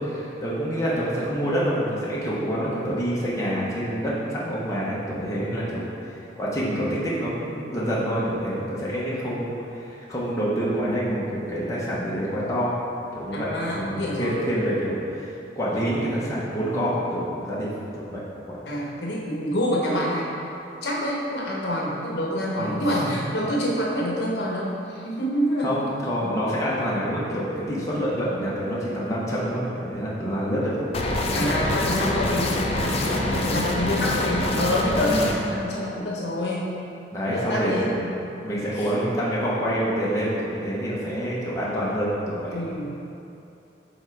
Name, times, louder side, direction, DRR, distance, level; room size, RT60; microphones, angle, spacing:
voice 1, 0.0-5.8 6.4-12.8 13.1-18.2 18.5-18.6 22.6-23.1 25.6-30.9 31.2-31.5 33.1-33.3 35.1-35.3 37.1-37.9 38.4-42.5, equal, 20° left, -8 dB, 0.9 m, -27 dB
voice 2, 13.3-14.4 18.7-20.5 20.8-25.8 31.3-36.7 37.3-38.1 38.7-38.9 42.5-43.0, equal, 65° left, -4 dB, 0.9 m, -27 dB
sound 1, 30.9-35.3, left 1 dB, 35° left, 0.4 m, -25 dB
5.3 x 3.8 x 4.6 m, 2.7 s
head